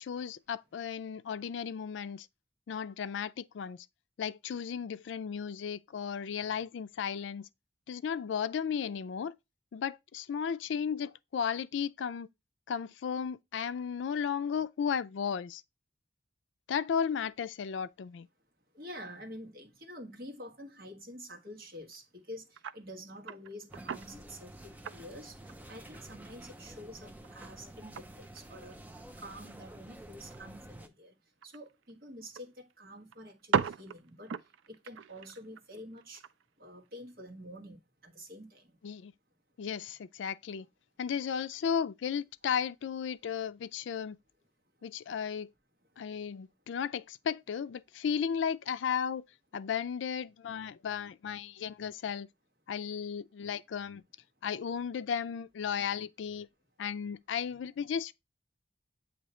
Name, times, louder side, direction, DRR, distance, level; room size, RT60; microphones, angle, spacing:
voice 1, 0.0-2.3 2.7-3.9 4.2-7.5 7.9-9.3 9.7-12.3 12.7-15.6 16.7-18.3 38.8-39.1 39.6-40.7 41.0-44.2 44.8-45.5 46.0-49.2 49.5-52.3 52.7-54.0 54.4-56.5 56.8-58.1, left 7 dB, 80° left, 0.4 m, -34 dB
voice 2, 18.7-25.4 25.7-28.8 29.2-31.1 31.4-34.3 34.7-36.2 36.6-38.7, equal, 50° right, 1.3 m, -48 dB
sound 1, 21.7-22.0 22.5-22.8 23.2-24.2 24.7-26.1 26.4-26.5 26.9-29.0 29.3-29.7 30.0-30.1 30.3-30.4 31.4-32.4 32.7-32.8 33.1-36.4 36.8-36.9, right 7 dB, 90° right, 0.4 m, -37 dB
sound 2, 23.7-30.9, right 1 dB, 10° right, 0.4 m, -50 dB
7.9 x 2.8 x 4.2 m
head